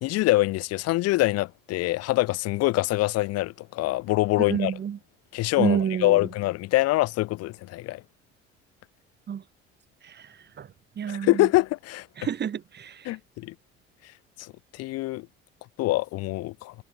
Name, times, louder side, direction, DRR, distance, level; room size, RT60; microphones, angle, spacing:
voice 1, 0.0-4.7 5.3-8.0 11.1-12.1 13.1-13.5 14.4-15.3 15.8-16.7, left 18 dB, 55° left, 0.5 m, -25 dB
voice 2, 4.4-5.0 5.6-6.3 9.3-9.4 10.0-11.5 12.2-13.2, right 8 dB, 35° right, 1.0 m, -30 dB
hypercardioid pair, 70°, 30 cm